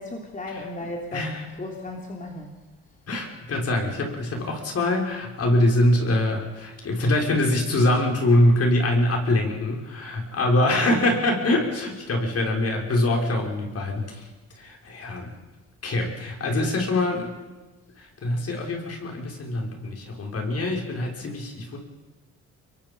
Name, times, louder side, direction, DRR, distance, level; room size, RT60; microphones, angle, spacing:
voice 1, 0.0-1.3 1.6-2.6, left 1 dB, 25° left, 1 dB, 3.4 m, -35 dB
voice 2, 1.1-1.5 3.1-14.3 14.6-15.3 15.8-17.3 18.0-21.8, left 1 dB, 50° left, 1 dB, 6.1 m, -24 dB
25.5 x 22.5 x 5.6 m, 1.2 s
cardioid pair, 90°, 30 cm